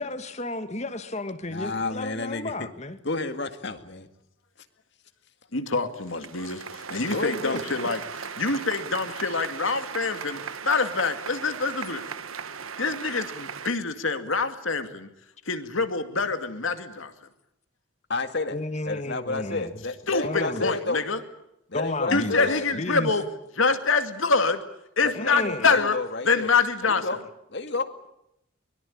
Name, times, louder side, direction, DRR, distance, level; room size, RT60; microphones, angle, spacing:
voice 1, 0.0-3.0 18.5-19.7 20.2-20.6 21.7-23.1 25.1-25.7, left 2 dB, 35° left, 10 dB, 1.8 m, -32 dB
voice 2, 1.5-2.5 3.0-4.1 7.1-7.8 18.1-18.6 18.9-21.0 21.7-22.6 25.0-26.5 26.8-27.2 27.5-28.1, left 3 dB, 55° left, 9 dB, 2.1 m, -30 dB
voice 3, 5.5-8.0 8.4-12.1 12.8-15.1 15.5-17.1 20.1-21.2 22.1-23.2 23.6-24.6 25.0-25.9 26.3-27.0, left 4 dB, 70° left, 8 dB, 2.3 m, -25 dB
sound 1, 6.0-13.7, right 6 dB, 90° right, 1.4 m, -37 dB
23.5 x 22.5 x 8.7 m, 0.81 s
head